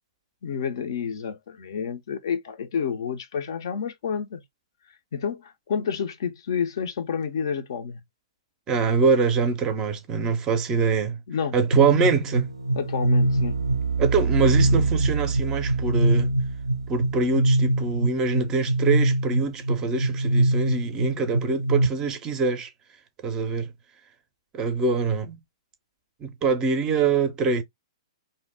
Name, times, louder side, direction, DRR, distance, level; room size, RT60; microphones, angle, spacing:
voice 1, 0.4-4.4 5.1-8.0 11.3-11.5 12.8-13.6, left 7 dB, 50° left, 0.5 m, -29 dB
voice 2, 8.7-11.2 11.5-12.5 14.0-16.3 16.9-22.7 23.2-23.7 24.5-25.4 26.2-27.6, right 5 dB, 20° right, 0.5 m, -24 dB
sound 1, 11.7-21.9, right 2 dB, 80° right, 0.4 m, -23 dB
2.6 x 2.0 x 3.2 m
figure-of-eight pair, 115°, 3 cm